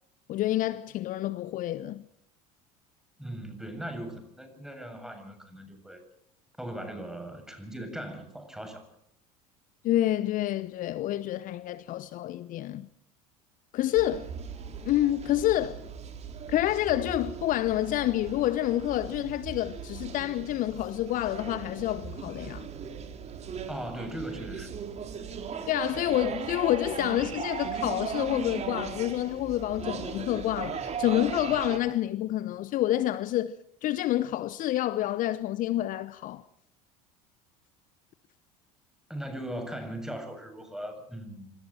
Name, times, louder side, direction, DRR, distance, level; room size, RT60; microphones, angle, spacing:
voice 1, 0.3-2.1 9.8-12.9 13.7-14.3 14.8-15.8 16.5-22.7 25.7-33.6 33.8-36.4, left 14 dB, 45° left, 0.9 m, -28 dB
voice 2, 3.2-6.0 6.6-8.9 23.7-24.7 39.1-41.5, right 1 dB, 5° right, 7.4 m, -39 dB
sound 1, 13.9-31.8, right 6 dB, 35° right, 3.5 m, -38 dB
26.5 x 26.5 x 4.4 m
figure-of-eight pair, 70°, 19 cm